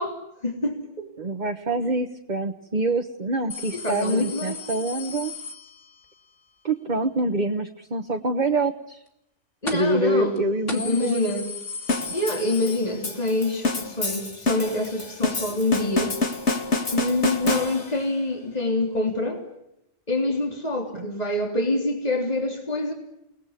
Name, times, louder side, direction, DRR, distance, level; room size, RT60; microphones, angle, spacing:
voice 1, 0.0-1.1 3.7-4.6 9.6-10.4 10.7-11.5 12.1-16.2 16.9-19.4 20.1-22.9, left 2 dB, 35° left, 2 dB, 3.8 m, -26 dB
voice 2, 1.2-5.3 6.6-9.0 9.7-11.2 17.4-17.6 20.9-21.1, right 2 dB, 40° right, 5 dB, 1.4 m, -26 dB
sound 1, 3.5-6.2 9.7-10.1 10.4-10.5 10.7-13.4 13.7-13.8 14.9-15.0, left 4 dB, 90° left, 3.2 m, -36 dB
sound 2, 11.9-18.1, left 3 dB, 70° left, 2.5 m, -27 dB
29.5 x 19.5 x 9.9 m, 0.84 s
omnidirectional pair, 1.2 m